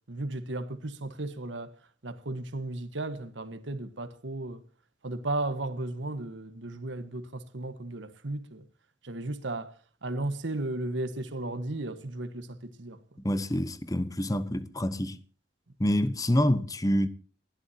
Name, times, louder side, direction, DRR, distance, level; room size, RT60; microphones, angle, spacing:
voice 1, 0.1-1.7 2.0-4.6 5.0-8.6 9.0-9.7 10.0-13.0, right 2 dB, 85° right, 1.5 m, -35 dB
voice 2, 13.2-15.2 15.8-17.1, left 1 dB, 20° left, 1.0 m, -27 dB
29.0 x 12.0 x 2.9 m
head